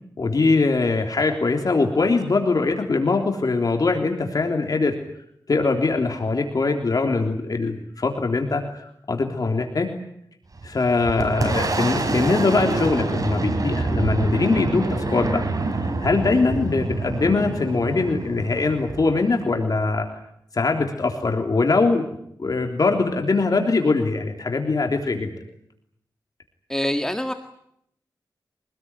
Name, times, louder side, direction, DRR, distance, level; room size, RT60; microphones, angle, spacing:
voice 1, 0.2-4.9 5.5-9.9 10.6-15.4 16.0-20.1 20.5-22.0 22.4-25.3, left 3 dB, 55° left, 3 dB, 3.5 m, -22 dB
Boom, 10.5-19.9, right 2 dB, 50° right, 5.2 m, -26 dB
voice 2, 26.7-27.3, left 1 dB, 10° left, 6 dB, 1.8 m, -24 dB
25.5 x 19.5 x 9.8 m, 0.73 s
wide cardioid pair, 95°, 8 cm